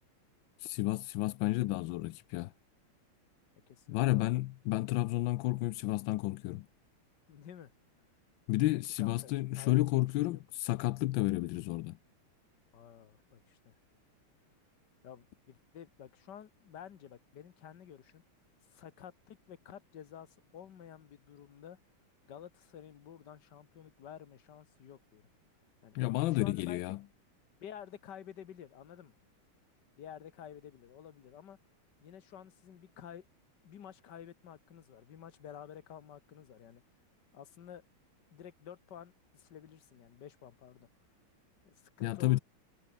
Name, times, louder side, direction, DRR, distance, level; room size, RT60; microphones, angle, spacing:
voice 1, 0.6-2.5 3.9-6.6 8.5-11.9 25.9-27.0 42.0-42.4, left 17 dB, 75° left, 1.2 m, -31 dB
voice 2, 3.7-4.4 7.3-7.7 8.7-9.8 10.2-10.4 12.7-13.7 15.0-18.2 18.7-21.8 22.3-25.2 25.8-26.0 26.3-27.0 27.6-29.2 30.0-31.6 32.0-33.2 33.6-36.8 37.3-37.8 38.3-40.9 41.6-42.4, left 9 dB, 55° left, 1.8 m, -51 dB
omnidirectional pair, 2.4 m